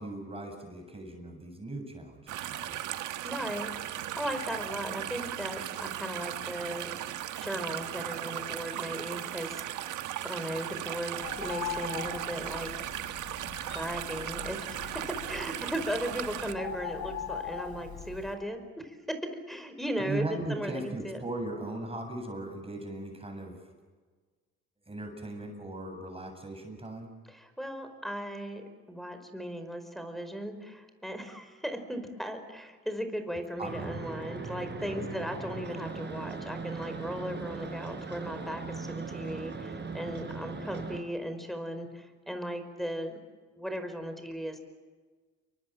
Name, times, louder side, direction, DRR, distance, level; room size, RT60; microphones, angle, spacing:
voice 1, 0.0-2.8 20.0-23.7 24.9-27.2 33.6-34.0 34.8-35.1, right 2 dB, 20° right, 4 dB, 7.7 m, -38 dB
sound 1, 2.3-16.5, right 12 dB, 85° right, 1.5 m, -37 dB
voice 2, 3.2-6.9 7.4-10.0 10.2-12.8 13.7-21.2 27.3-43.2 43.6-44.6, equal, ahead, 8 dB, 5.1 m, -37 dB
Bird, 11.2-18.3, left 8 dB, 70° left, 4.9 m, -41 dB
sound 2, 33.7-41.0, right 4 dB, 35° right, 4.9 m, -39 dB
29.5 x 24.0 x 7.6 m, 1.4 s
cardioid pair, 90°, 30 cm